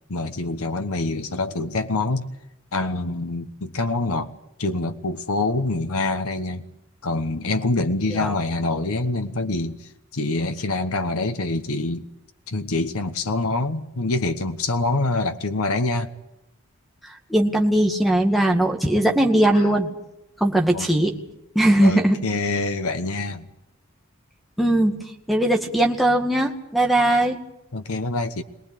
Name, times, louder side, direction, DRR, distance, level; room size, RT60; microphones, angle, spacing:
voice 1, 0.1-2.3 2.7-4.3 4.6-6.7 7.0-12.1 12.5-16.1 18.9-19.1 19.5-19.7 20.7-20.9 21.8-23.5 27.7-28.4, left 2 dB, 85° left, 8 dB, 1.2 m, -25 dB
voice 2, 17.3-19.9 20.4-21.1 21.6-22.2 24.6-25.0 25.3-27.4, right 1 dB, ahead, 4 dB, 2.0 m, -19 dB
22.5 x 19.5 x 8.5 m, 0.88 s
head